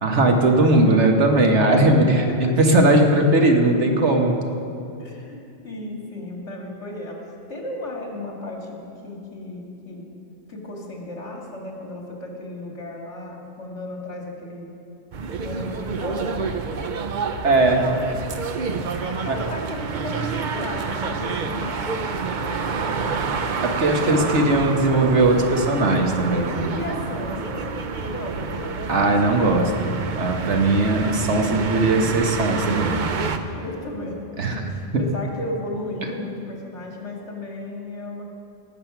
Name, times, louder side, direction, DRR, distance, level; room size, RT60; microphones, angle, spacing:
voice 1, 0.0-4.4 17.4-17.8 19.3-19.4 23.6-26.7 28.9-33.0 34.4-34.6, right 2 dB, 75° right, 3 dB, 1.5 m, -19 dB
voice 2, 1.6-2.8 5.0-5.4 5.6-10.1 10.5-14.7 15.4-16.6 19.1-23.1 23.9-24.3 26.7-27.7 28.0-28.9 33.3-38.2, left 1 dB, 75° left, -1 dB, 2.3 m, -34 dB
sound 1, 15.1-33.4, right 5 dB, 50° right, 0.7 m, -28 dB
18.5 x 7.6 x 5.9 m, 2.6 s
omnidirectional pair, 1.2 m